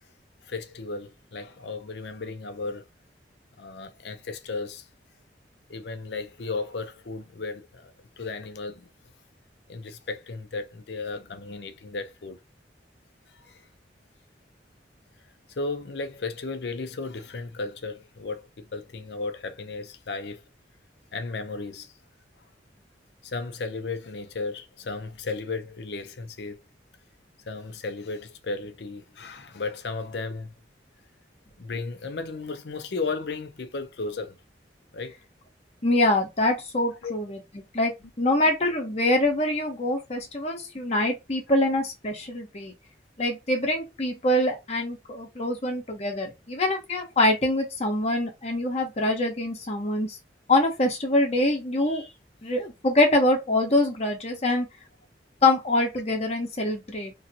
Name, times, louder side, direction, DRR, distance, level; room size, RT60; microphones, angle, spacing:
voice 1, 0.4-2.9 3.6-4.9 5.7-8.9 9.7-12.4 13.3-13.7 15.5-20.4 21.1-21.9 23.2-26.6 27.5-30.5 31.6-34.4 34.9-35.2 37.0-37.1, left 3 dB, 70° left, 0.6 m, -34 dB
voice 2, 35.8-37.9 38.2-42.7 43.2-50.2 50.5-52.1 52.4-54.7 55.4-57.1, left 1 dB, 40° left, 0.9 m, -24 dB
3.1 x 2.7 x 2.7 m
head